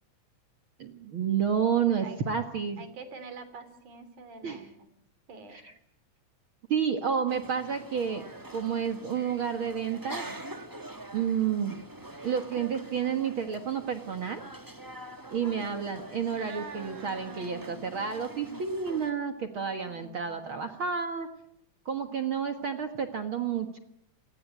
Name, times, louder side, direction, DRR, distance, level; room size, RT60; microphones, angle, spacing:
voice 1, 0.8-2.9 4.4-4.6 5.5-5.6 6.7-8.2 8.5-10.4 11.1-11.8 12.2-14.4 15.3-21.3 21.9-23.8, right 7 dB, 50° right, 6 dB, 2.0 m, -30 dB
voice 2, 2.8-4.9 5.3-5.6 16.4-17.9 19.6-20.4, right 4 dB, 80° right, 11 dB, 4.7 m, -46 dB
sound 1, 7.3-19.1, right 1 dB, 15° right, 0.6 m, -45 dB
29.0 x 19.5 x 9.3 m, 0.76 s
omnidirectional pair, 3.5 m